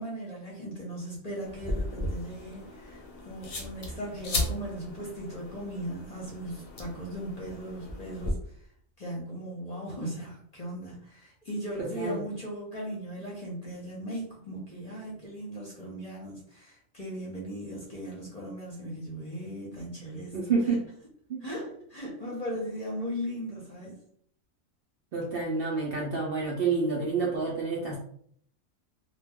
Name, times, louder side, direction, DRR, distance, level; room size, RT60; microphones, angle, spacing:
voice 1, 0.0-8.4 9.0-20.4 21.4-24.0, equal, 40° left, -4 dB, 0.7 m, -38 dB
sound 1, 1.5-8.3, left 2 dB, 65° left, 0.3 m, -36 dB
voice 2, 11.8-12.2 20.3-20.8 21.3-21.4 25.1-28.0, right 4 dB, 60° right, -3 dB, 0.6 m, -28 dB
2.2 x 2.2 x 3.4 m, 0.63 s
omnidirectional pair, 1.4 m